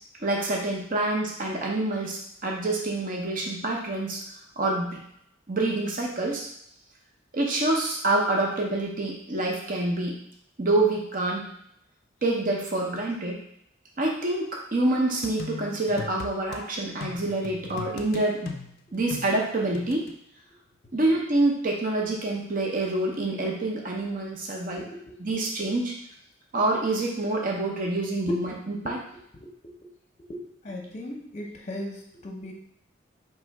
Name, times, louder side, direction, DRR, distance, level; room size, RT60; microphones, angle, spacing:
voice 1, 0.2-4.2 4.6-5.0 5.5-6.5 7.3-10.2 10.6-11.4 12.2-13.4 14.0-18.6 18.9-20.1 20.9-24.8 25.2-25.9 26.5-29.0, right 2 dB, 45° right, -1 dB, 0.8 m, -27 dB
sound 1, 15.2-16.6 17.0-20.1, left 4 dB, 50° left, 0.4 m, -39 dB
voice 2, 24.7-25.2 28.3-28.5 28.8-28.9 29.3-29.9 30.2-32.5, left 1 dB, 35° left, 1 dB, 0.8 m, -37 dB
3.3 x 3.1 x 4.6 m, 0.72 s
head